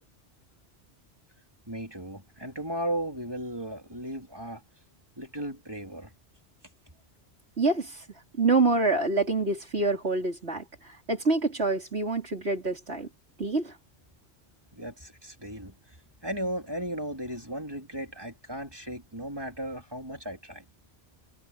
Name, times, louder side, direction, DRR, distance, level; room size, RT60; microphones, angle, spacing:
voice 1, 1.7-4.6 5.2-6.1 14.7-16.0 16.2-20.6, right 1 dB, 20° right, 3.8 m, -36 dB
voice 2, 7.6-8.0 8.3-13.1 13.4-13.8, right 3 dB, 70° right, 4.2 m, -26 dB
omnidirectional pair, 1.1 m